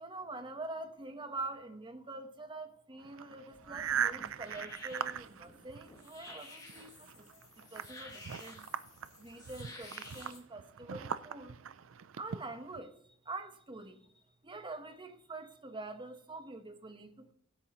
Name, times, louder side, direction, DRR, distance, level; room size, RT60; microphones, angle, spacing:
voice 1, 0.0-8.7 9.2-11.6 12.2-17.3, right 2 dB, 25° right, 1.1 m, -45 dB
sound 1, 3.0-6.3 6.7-12.8, right 8 dB, 70° right, 0.5 m, -40 dB
sound 2, 3.5-10.4, left 2 dB, 20° left, 2.3 m, -52 dB
21.0 x 8.7 x 3.0 m
head